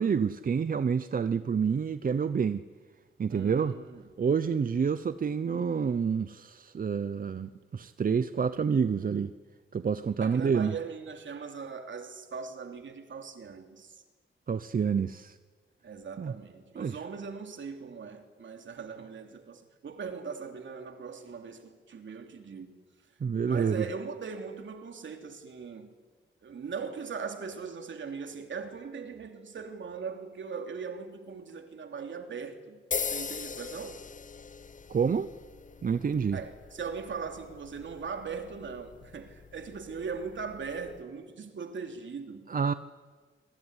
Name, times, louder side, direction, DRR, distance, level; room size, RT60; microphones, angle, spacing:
voice 1, 0.0-2.7 3.2-3.8 4.2-9.3 9.7-10.7 14.5-15.4 16.2-16.3 16.8-17.0 23.2-23.9 34.9-35.3 35.8-36.4 42.5-42.7, right 6 dB, 45° right, 0.7 m, -28 dB
voice 2, 3.3-4.0 7.8-7.9 10.2-14.0 15.8-22.8 23.4-25.9 26.4-32.8 33.1-34.1 36.3-42.5, right 5 dB, 65° right, 3.1 m, -40 dB
sound 1, 32.9-41.0, left 5 dB, 40° left, 0.8 m, -41 dB
25.5 x 23.0 x 9.9 m
wide cardioid pair, 145°, 21 cm